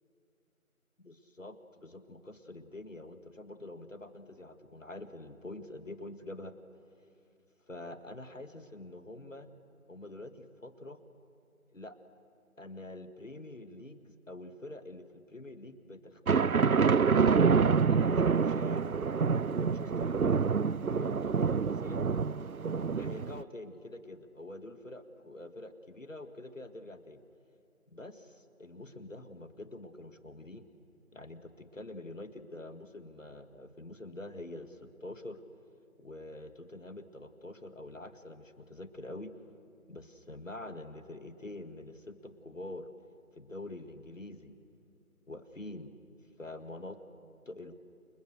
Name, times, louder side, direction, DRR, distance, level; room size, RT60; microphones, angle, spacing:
voice 1, 1.0-6.5 7.7-9.5 9.9-11.0 11.7-12.0 12.6-16.5 17.1-18.8 19.5-22.1 22.9-27.2 27.9-30.7 31.1-35.4 36.0-39.3 39.9-42.9 43.3-44.6 45.3-45.9 46.4-47.0 47.5-47.7, left 2 dB, 60° left, 9 dB, 2.0 m, -46 dB
sound 1, 16.3-23.4, right 5 dB, 75° right, 0.7 m, -27 dB
29.5 x 28.5 x 6.6 m, 2.6 s
figure-of-eight pair, 175°, 43 cm